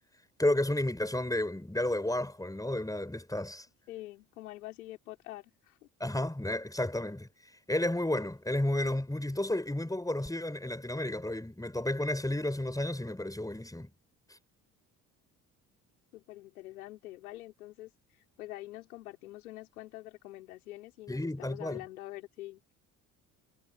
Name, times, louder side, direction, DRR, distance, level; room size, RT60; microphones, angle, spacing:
voice 1, 0.4-3.6 6.0-7.3 7.7-13.9 21.1-21.8, left 1 dB, 10° left, 6.7 m, -32 dB
voice 2, 3.9-5.9 16.1-22.7, left 16 dB, 85° left, 4.8 m, -46 dB
hypercardioid pair, 50°, 42 cm